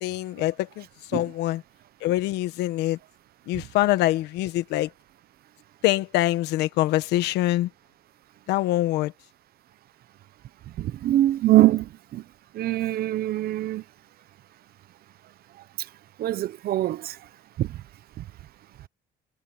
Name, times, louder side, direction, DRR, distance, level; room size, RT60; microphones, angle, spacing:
voice 1, 0.0-0.8 1.1-1.6 2.0-3.0 3.5-4.9 5.8-7.7 8.5-9.1, left 16 dB, 90° left, 1.3 m, -24 dB
voice 2, 10.8-12.2 12.5-13.8 16.2-17.2 17.6-17.8, right 15 dB, 65° right, 1.0 m, -23 dB
cardioid pair, 110°, 17 cm